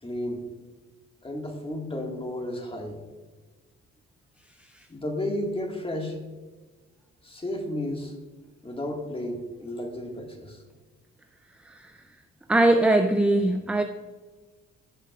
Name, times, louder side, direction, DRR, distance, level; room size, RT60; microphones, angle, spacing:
voice 1, 0.0-0.5 1.2-3.0 4.9-6.2 7.2-8.1 8.6-10.6, left 1 dB, 20° left, 2 dB, 1.7 m, -32 dB
voice 2, 12.5-13.8, right 2 dB, 5° right, 5 dB, 0.4 m, -21 dB
15.5 x 6.6 x 2.4 m, 1.3 s
cardioid pair, 90°, 30 cm